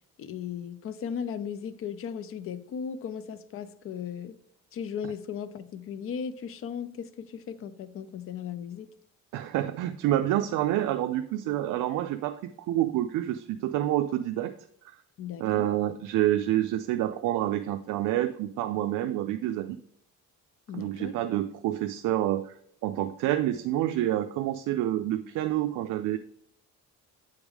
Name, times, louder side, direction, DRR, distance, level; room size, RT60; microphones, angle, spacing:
voice 1, 0.2-4.4 4.7-8.9 15.2-15.7 20.7-21.2, left 7 dB, 45° left, 13 dB, 0.5 m, -36 dB
voice 2, 9.3-14.6 14.8-15.0 15.4-19.8 20.7-22.5 22.8-26.2, right 13 dB, 70° right, 7 dB, 0.5 m, -28 dB
8.0 x 3.6 x 4.7 m, 0.65 s
cardioid pair, 155°, 32 cm